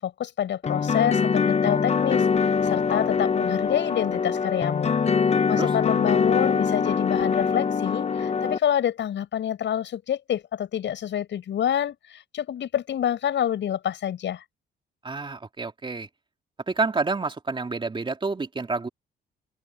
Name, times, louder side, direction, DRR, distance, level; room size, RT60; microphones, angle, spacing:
voice 1, 0.0-2.2 2.6-4.9 5.5-14.4, left 10 dB, 65° left, 7.6 m, -27 dB
sound 1, 0.6-8.6, left 6 dB, 35° left, 0.7 m, -23 dB
voice 2, 15.0-16.1 16.7-18.9, right 3 dB, 25° right, 2.7 m, -28 dB
open air
cardioid pair, 90°, 20 cm